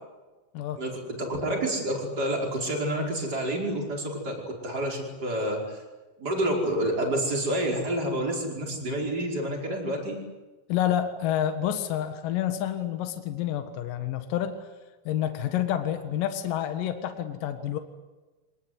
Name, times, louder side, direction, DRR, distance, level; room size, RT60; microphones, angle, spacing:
voice 1, 0.8-5.8 6.2-10.2, right 1 dB, 25° right, 0 dB, 5.3 m, -29 dB
voice 2, 10.7-14.7 15.1-17.8, left 11 dB, 65° left, 7 dB, 3.0 m, -28 dB
25.0 x 20.0 x 9.8 m, 1.2 s
omnidirectional pair, 4.6 m